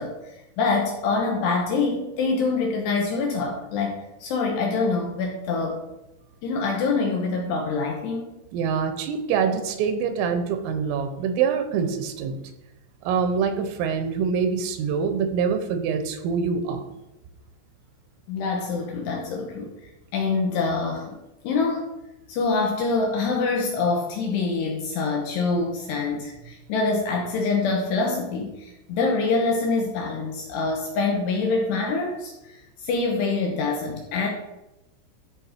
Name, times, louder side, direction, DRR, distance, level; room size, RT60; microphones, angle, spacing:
voice 1, 0.0-5.8 6.4-8.4 18.3-19.8 20.1-21.2 21.4-21.9 22.3-34.3, left 4 dB, 75° left, 1 dB, 2.6 m, -25 dB
voice 2, 8.5-12.4 13.0-16.9, right 6 dB, 85° right, 8 dB, 3.4 m, -25 dB
13.0 x 4.5 x 4.4 m, 0.97 s
omnidirectional pair, 5.9 m